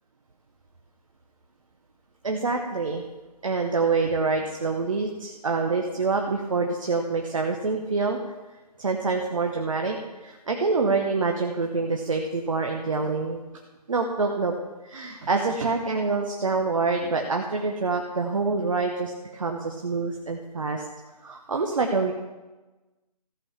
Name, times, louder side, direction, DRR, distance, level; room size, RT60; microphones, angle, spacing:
voice 1, 2.2-3.0 3.4-8.2 8.8-13.4 13.9-14.5 14.8-20.8 21.2-22.1, right 4 dB, 50° right, 2 dB, 1.0 m, -26 dB
14.5 x 5.5 x 7.0 m, 1.2 s
figure-of-eight pair, 155°, 21 cm